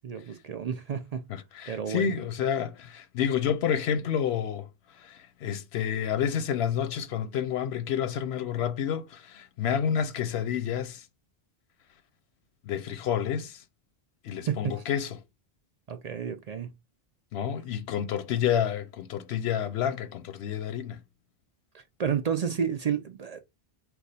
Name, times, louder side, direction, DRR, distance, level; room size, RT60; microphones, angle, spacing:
voice 1, 0.0-1.2 1.7-2.1 14.5-14.8 15.9-16.7 21.7-23.4, right 7 dB, 55° right, 0.5 m, -31 dB
voice 2, 1.3-4.7 5.0-11.0 12.6-13.6 14.2-15.2 17.3-21.0, left 8 dB, 90° left, 0.9 m, -29 dB
4.6 x 2.3 x 4.0 m
omnidirectional pair, 1.0 m